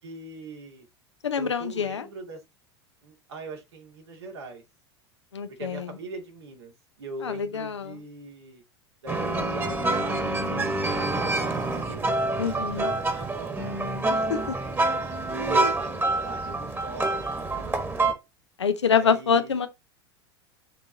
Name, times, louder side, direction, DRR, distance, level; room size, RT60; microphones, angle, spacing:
voice 1, 0.0-0.9 1.4-2.4 3.0-4.6 5.6-6.7 7.0-8.6 9.0-12.1 12.4-13.6 14.1-14.8 15.3-18.0 18.9-19.6, right 3 dB, 70° right, 2.4 m, -41 dB
voice 2, 1.2-2.1 5.3-5.9 7.2-8.0 12.4-12.9 14.1-14.5 18.6-19.7, left 6 dB, 80° left, 0.8 m, -26 dB
sound 1, 9.1-18.1, right 2 dB, 15° right, 1.6 m, -27 dB
10.0 x 3.8 x 2.9 m
figure-of-eight pair, 85°, 14 cm